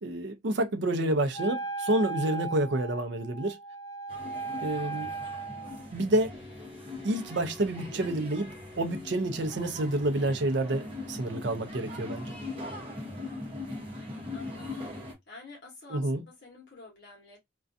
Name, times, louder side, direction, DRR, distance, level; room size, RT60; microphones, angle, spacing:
voice 1, 0.0-3.6 4.6-5.1 5.9-6.3 7.0-12.3 15.9-16.2, right 1 dB, 60° right, 0.5 m, -29 dB
Wind instrument woodwind instrument, 1.3-5.9, right 4 dB, 20° left, 0.3 m, -37 dB
sound 1, 4.1-15.1, left 2 dB, 30° right, 0.8 m, -41 dB
sound 2, 6.3-14.6, left 2 dB, ahead, 1.0 m, -52 dB
voice 2, 12.9-13.5 14.3-14.9 15.3-17.4, left 3 dB, 55° left, 0.9 m, -50 dB
2.3 x 2.2 x 2.5 m
head